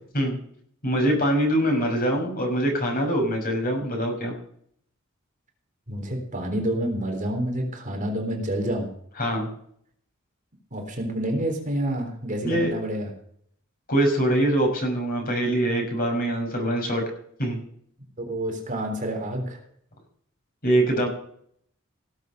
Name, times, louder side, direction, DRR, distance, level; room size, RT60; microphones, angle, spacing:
voice 1, 0.8-4.3 9.2-9.5 12.4-12.7 13.9-17.1 17.4-17.6 20.6-21.1, right 1 dB, 45° left, 2 dB, 5.9 m, -23 dB
voice 2, 5.9-8.9 10.7-13.1 18.2-19.6, right 1 dB, 40° right, 2 dB, 3.6 m, -28 dB
18.0 x 7.9 x 6.7 m, 0.64 s
head